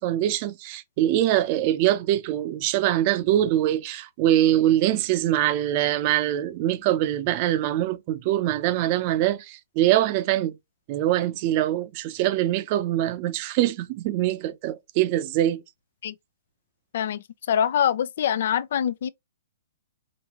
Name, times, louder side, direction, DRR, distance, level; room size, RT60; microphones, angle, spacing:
voice 1, 0.0-10.6 10.9-15.6, right 13 dB, 35° right, 0.6 m, -23 dB
voice 2, 16.9-19.1, left 9 dB, 60° left, 0.4 m, -24 dB
5.0 x 2.6 x 3.0 m
hypercardioid pair, 150°, 0 cm